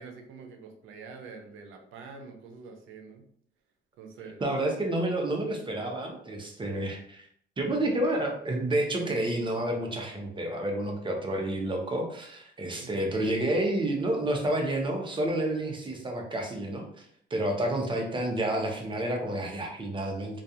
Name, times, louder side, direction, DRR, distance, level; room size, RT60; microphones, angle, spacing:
voice 1, 0.0-3.2 4.0-4.4 12.8-13.1, right 4 dB, 90° right, 4 dB, 0.5 m, -46 dB
voice 2, 4.4-7.3 7.6-17.1 17.3-20.4, right 1 dB, 25° right, 2 dB, 0.6 m, -29 dB
2.3 x 2.3 x 2.7 m, 0.66 s
cardioid pair, 90°, 20 cm